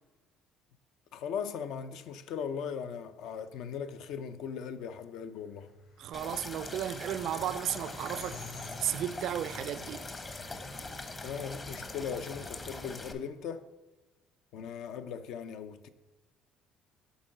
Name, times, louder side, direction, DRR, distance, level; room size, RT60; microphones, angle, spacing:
voice 1, 1.1-5.7 11.2-13.6 14.5-15.9, left 7 dB, 75° left, 0.5 m, -38 dB
sound 1, 5.5-10.9, left 3 dB, 55° left, 3.0 m, -50 dB
voice 2, 6.0-8.5 8.8-10.1, right 11 dB, 65° right, 0.4 m, -34 dB
sound 2, 6.1-13.1, left 2 dB, 25° left, 0.8 m, -42 dB
8.1 x 3.8 x 6.5 m
cardioid pair, 105°, 0 cm